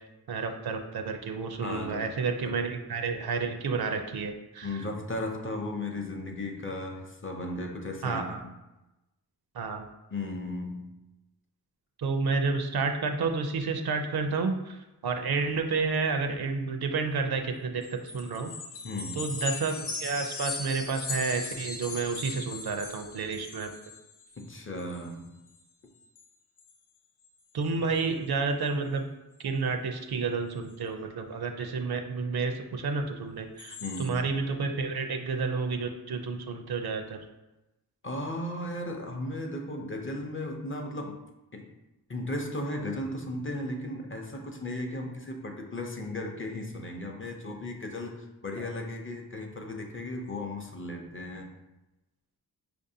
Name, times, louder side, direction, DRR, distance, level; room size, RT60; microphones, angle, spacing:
voice 1, 0.3-4.8 8.0-8.4 9.5-9.9 12.0-18.5 19.2-23.7 27.5-29.1 29.4-37.2 48.6-48.7, right 4 dB, 65° right, 5 dB, 0.5 m, -30 dB
voice 2, 1.6-2.0 2.4-2.6 4.6-8.3 10.1-10.9 18.8-19.3 24.4-25.4 27.8-27.9 33.8-34.2 38.0-41.2 41.5-41.7 42.1-51.5, left 1 dB, 30° left, 2 dB, 0.5 m, -36 dB
sound 1, 17.8-24.5 24.8-25.1 25.5-25.6 26.0-26.3 26.6-26.7 27.2-27.3 27.6-28.0 33.6-34.1, left 4 dB, 80° left, 0.6 m, -39 dB
4.7 x 2.6 x 2.6 m, 1.0 s
wide cardioid pair, 65°, 40 cm